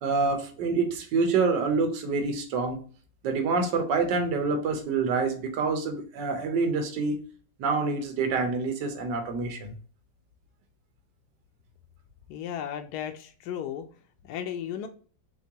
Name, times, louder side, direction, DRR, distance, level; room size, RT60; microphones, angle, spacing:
voice 1, 0.0-2.8 3.2-7.1 7.6-9.7, right 4 dB, 75° right, 5 dB, 1.6 m, -27 dB
voice 2, 12.3-13.9 14.2-14.9, left 9 dB, 70° left, 6 dB, 1.0 m, -35 dB
4.4 x 3.6 x 2.8 m, 0.40 s
omnidirectional pair, 2.0 m